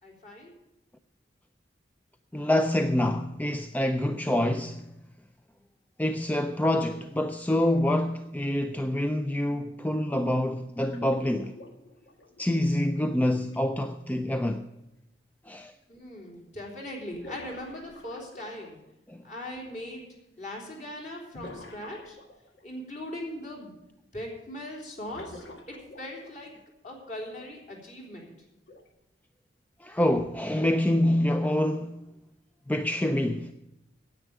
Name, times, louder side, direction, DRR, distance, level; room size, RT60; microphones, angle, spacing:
voice 1, 0.0-0.5 15.9-18.8 19.2-20.1 20.4-22.2 22.6-23.7 24.1-26.5 26.8-28.3, left 1 dB, 45° left, 3.4 m, -40 dB
voice 2, 2.3-4.8 6.0-11.5 12.4-14.7 15.5-15.7 19.1-19.2 29.8-32.0 32.7-33.5, left 1 dB, 10° left, 0.4 m, -26 dB
sound 1, 10.9-13.6 15.5-15.6 17.1-18.9 21.3-22.6 25.1-26.6 27.3-27.5 28.7-28.9 30.1-30.2, left 1 dB, 85° left, 1.6 m, -47 dB
9.8 x 8.5 x 8.8 m
head